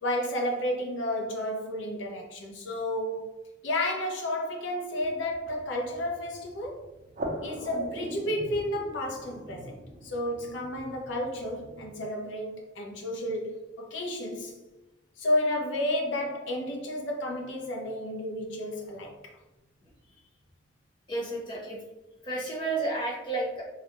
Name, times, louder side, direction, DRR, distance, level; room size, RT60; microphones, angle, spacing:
voice 1, 0.0-3.3 3.6-6.8 7.4-13.5 13.8-14.6 15.2-19.1, left 1 dB, 90° left, 0.6 m, -31 dB
sound 1, 5.0-12.0, right 1 dB, 45° right, 0.4 m, -42 dB
voice 2, 21.1-21.8 22.2-23.6, right 2 dB, 25° left, 0.8 m, -31 dB
2.3 x 2.1 x 2.9 m
head